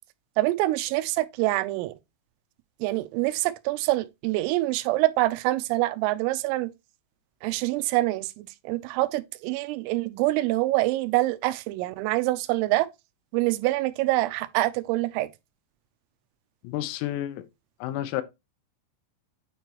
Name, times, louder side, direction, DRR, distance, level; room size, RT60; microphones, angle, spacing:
voice 1, 0.4-1.9 2.8-6.7 7.4-12.9 13.3-15.3, right 18 dB, 90° right, 3.3 m, -25 dB
voice 2, 16.6-17.4 17.8-18.2, left 13 dB, 90° left, 3.5 m, -30 dB
9.3 x 4.5 x 2.9 m
omnidirectional pair, 5.9 m